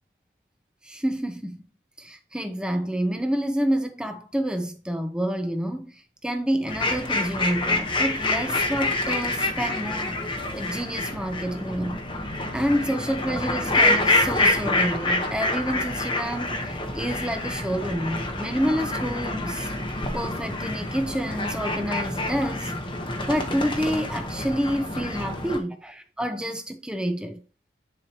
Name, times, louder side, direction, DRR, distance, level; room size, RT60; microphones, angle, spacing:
voice 1, 0.8-1.6 2.0-10.2 10.5-12.0 12.5-19.7 20.1-22.7 23.3-27.4, equal, 5° right, 0.9 m, -28 dB
sound 1, 6.7-25.6, left 2 dB, 25° left, 1.1 m, -27 dB
10.5 x 4.9 x 3.0 m
head